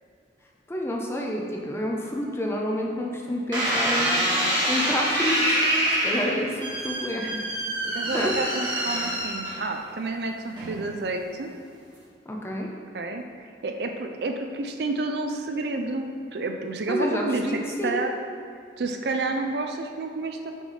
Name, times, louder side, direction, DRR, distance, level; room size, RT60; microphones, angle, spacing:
voice 1, 0.7-4.3 4.7-5.6 6.0-7.4 8.1-8.3 8.9-9.0 12.3-12.7 16.9-18.0, left 1 dB, 15° left, -1 dB, 0.6 m, -29 dB
sound 1, 3.5-9.9 10.6-11.0, right 1 dB, 25° right, 1.5 m, -26 dB
voice 2, 7.8-11.5 12.9-13.2 13.6-18.1 18.8-20.6, right 3 dB, 60° right, 5 dB, 0.5 m, -30 dB
6.2 x 3.5 x 5.5 m, 2.4 s
head